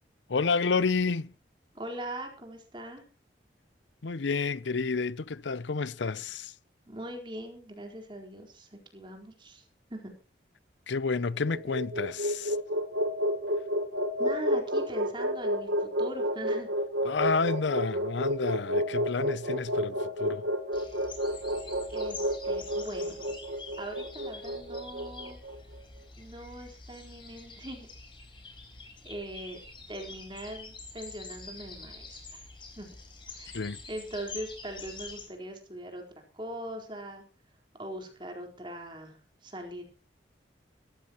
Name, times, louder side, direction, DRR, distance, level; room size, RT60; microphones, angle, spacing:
voice 1, 0.3-1.3 4.0-6.5 10.9-12.6 17.0-20.4 33.5-33.8, left 4 dB, 90° left, 0.6 m, -30 dB
voice 2, 1.7-3.0 6.9-9.6 9.9-10.1 14.2-16.7 21.9-23.4 23.8-25.4 26.2-27.9 29.0-29.6 29.9-32.4 32.8-32.9 33.3-36.0 36.3-37.3 37.8-39.8, right 1 dB, 25° right, 4.2 m, -41 dB
sound 1, 11.3-25.6, equal, 90° right, 1.6 m, -30 dB
sound 2, 20.7-35.3, left 4 dB, 30° left, 4.4 m, -46 dB
21.0 x 14.0 x 3.0 m
head